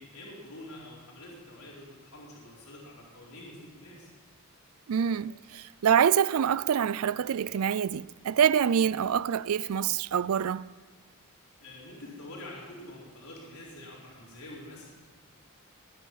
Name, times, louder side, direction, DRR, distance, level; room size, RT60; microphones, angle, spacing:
voice 1, 0.0-4.1 8.7-8.8 11.6-14.9, left 1 dB, 80° left, 4.4 m, -46 dB
voice 2, 4.9-10.7, right 8 dB, 75° right, 0.4 m, -26 dB
22.0 x 10.0 x 5.7 m
head